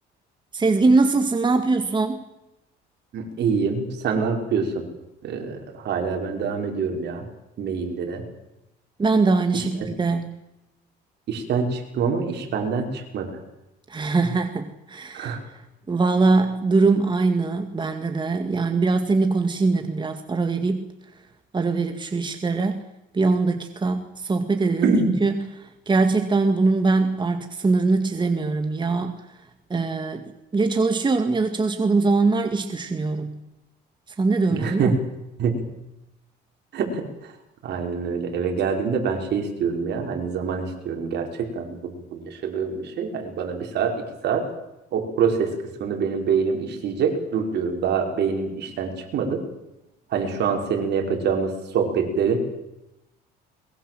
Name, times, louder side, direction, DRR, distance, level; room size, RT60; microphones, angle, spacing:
voice 1, 0.5-2.2 9.0-10.4 13.9-15.3 15.9-20.9 21.5-22.8 23.1-29.2 29.7-30.2 30.5-33.3 34.2-34.9, right 3 dB, 25° right, 6 dB, 2.1 m, -22 dB
voice 2, 3.1-4.7 5.2-7.2 7.6-8.2 11.3-13.3 15.1-15.4 24.8-25.1 34.5-35.0 35.4-35.6 36.7-37.0 37.6-44.5 44.9-49.4 50.1-52.4, right 5 dB, 60° right, 3 dB, 5.6 m, -25 dB
22.5 x 22.0 x 7.8 m, 0.93 s
cardioid pair, 95°, 20 cm